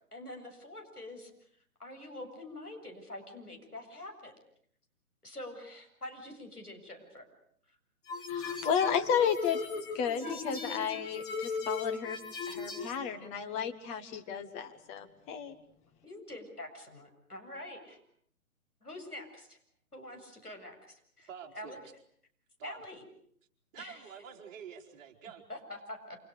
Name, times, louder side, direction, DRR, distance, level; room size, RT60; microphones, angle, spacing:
voice 1, 0.1-1.3 1.8-4.3 5.2-7.3 16.0-18.0 18.8-19.6 19.9-21.3 21.5-21.8 22.6-23.0 23.8-24.1 25.5-26.2, left 1 dB, 90° left, 3 dB, 7.9 m, -45 dB
sound 1, 8.1-13.0, left 4 dB, 35° left, 5.3 m, -37 dB
voice 2, 8.3-9.6 9.9-12.2 12.5-15.5, left 7 dB, 15° left, 8 dB, 1.4 m, -32 dB
voice 3, 21.3-21.8 22.6-22.8 23.7-25.4, right 8 dB, 25° right, -1 dB, 4.1 m, -47 dB
29.0 x 27.5 x 6.7 m, 0.64 s
figure-of-eight pair, 135°, 44 cm